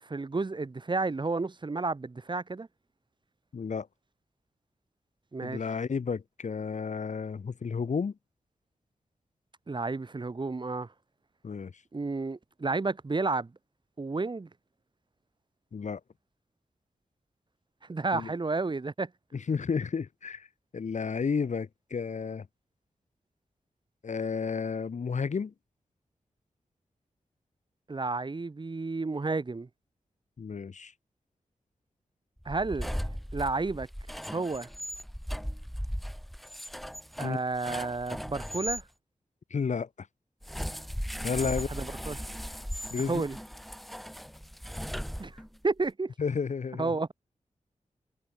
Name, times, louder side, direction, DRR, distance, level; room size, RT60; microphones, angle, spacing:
voice 1, 0.0-2.7 5.3-5.6 9.7-10.9 11.9-13.5 14.0-14.5 17.9-19.1 27.9-29.7 32.4-33.0 33.3-33.9 34.3-34.7 37.2-38.8 41.4-42.2 43.1-43.4 45.2-46.1 46.8-47.1, right 3 dB, 35° right, 1.2 m, -31 dB
voice 2, 3.5-3.9 5.4-8.1 11.4-11.7 15.7-16.0 18.1-18.3 19.3-20.5 20.7-22.5 24.0-25.5 30.4-30.9 37.2-37.4 39.5-39.9 41.2-41.7 42.9-43.2 46.2-47.0, left 5 dB, 65° left, 1.6 m, -32 dB
sound 1, 32.4-38.8 40.4-45.7, equal, ahead, 4.4 m, -37 dB
cardioid pair, 65°, 13 cm